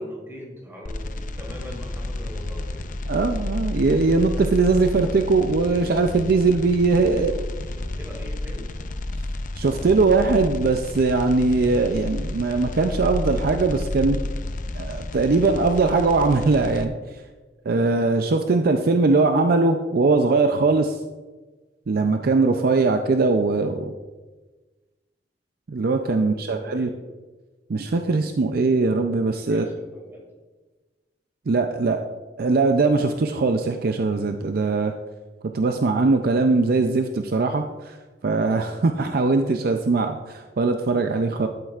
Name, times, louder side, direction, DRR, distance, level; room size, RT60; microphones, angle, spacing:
voice 1, 0.0-2.9 6.9-8.7 26.2-27.0 29.3-30.3, equal, 15° right, -3 dB, 3.0 m, -41 dB
sound 1, 0.9-16.9, left 2 dB, 50° left, 0.6 m, -31 dB
voice 2, 3.1-7.3 9.6-14.2 14.7-16.9 17.7-21.0 21.9-23.9 25.7-26.9 27.7-29.6 31.5-32.0 32.4-34.9 35.5-37.9 38.2-41.5, right 3 dB, 55° right, 6 dB, 0.5 m, -21 dB
12.5 x 7.8 x 2.4 m, 1.3 s
head